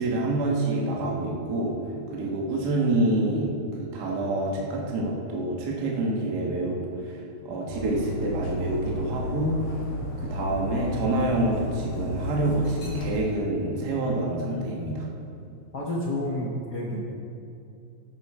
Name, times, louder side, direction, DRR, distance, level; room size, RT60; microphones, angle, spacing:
voice 1, 0.0-1.7 2.1-9.8 10.2-15.1, right 2 dB, 45° right, -2 dB, 1.5 m, -27 dB
Dog, 7.7-13.1, left 1 dB, 50° left, 2.5 m, -33 dB
voice 2, 15.7-17.0, left 1 dB, 65° left, -3 dB, 0.9 m, -29 dB
12.5 x 10.5 x 4.4 m, 2.6 s
omnidirectional pair, 3.4 m